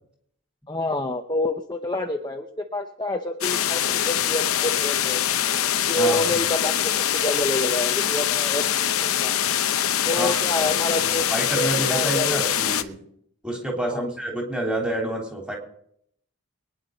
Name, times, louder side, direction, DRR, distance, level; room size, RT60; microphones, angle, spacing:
voice 1, 0.7-2.5 2.7-5.2 5.9-8.6 9.0-9.3 10.1-11.3 11.6-12.4 13.9-14.1, left 1 dB, 20° left, 4 dB, 0.7 m, -27 dB
sound 1, 3.4-12.8, left 10 dB, 80° left, 0.8 m, -23 dB
voice 2, 6.0-6.5 10.1-10.7 11.1-13.0 13.4-15.6, right 1 dB, 5° right, -1 dB, 3.3 m, -28 dB
24.0 x 10.0 x 3.9 m, 0.69 s
head